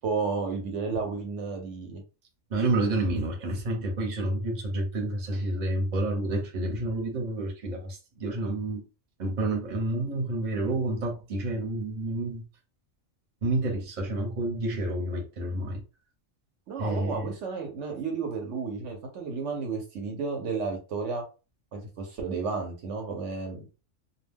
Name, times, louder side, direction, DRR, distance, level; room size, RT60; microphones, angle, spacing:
voice 1, 0.0-2.0 16.7-21.2 21.7-23.7, right 4 dB, 70° right, 0.9 m, -32 dB
voice 2, 2.5-8.8 9.2-12.4 13.4-15.8 16.8-17.3, right 2 dB, 40° right, 0.8 m, -29 dB
2.3 x 2.2 x 3.4 m
omnidirectional pair, 1.3 m